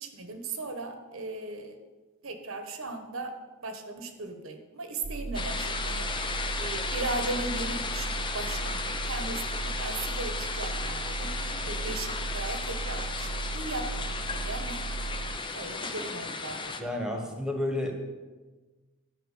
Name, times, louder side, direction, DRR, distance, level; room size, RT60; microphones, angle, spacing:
voice 1, 0.0-1.8 2.2-3.3 3.6-6.0 6.6-11.3 11.6-14.2 14.4-14.8 15.5-17.3, right 3 dB, 70° right, 7 dB, 1.4 m, -37 dB
sound 1, 5.0-15.4, right 4 dB, 40° right, 0.5 m, -36 dB
sound 2, 5.3-16.8, left 4 dB, 20° left, 0.8 m, -34 dB
voice 2, 16.8-17.9, left 1 dB, 5° right, 2 dB, 1.5 m, -31 dB
12.0 x 6.0 x 8.4 m, 1.3 s
head